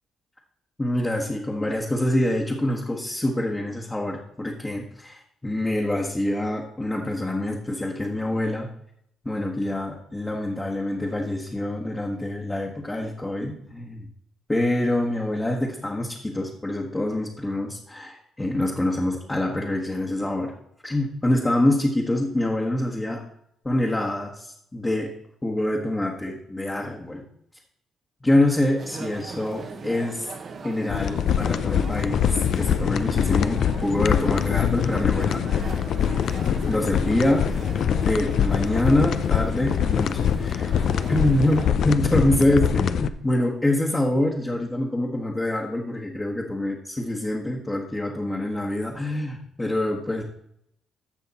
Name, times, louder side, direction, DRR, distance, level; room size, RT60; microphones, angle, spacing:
voice 1, 0.8-8.7 9.2-14.1 14.5-20.5 20.8-23.2 23.6-25.1 25.4-27.2 28.2-30.3 30.6-35.7 36.7-37.6 38.0-40.7 41.1-50.2, left 1 dB, 15° left, -2 dB, 1.4 m, -25 dB
sound 1, 28.8-41.7, right 4 dB, 50° right, 1.1 m, -40 dB
sound 2, 30.9-43.1, left 8 dB, 65° left, 0.5 m, -24 dB
14.5 x 5.6 x 4.2 m, 0.74 s
cardioid pair, 90°, 0 cm